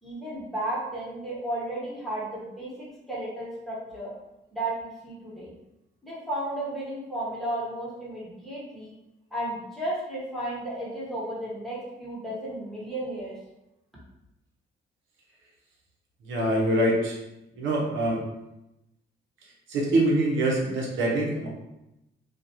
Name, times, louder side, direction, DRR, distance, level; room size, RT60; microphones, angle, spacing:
voice 1, 0.0-4.1 4.5-5.5 6.0-8.9 9.3-13.4, right 1 dB, ahead, -8 dB, 1.1 m, -33 dB
voice 2, 16.3-17.2 17.6-18.2 19.7-21.5, right 1 dB, 80° right, -2 dB, 0.7 m, -24 dB
2.4 x 2.2 x 2.8 m, 0.91 s
cardioid pair, 90°, 20 cm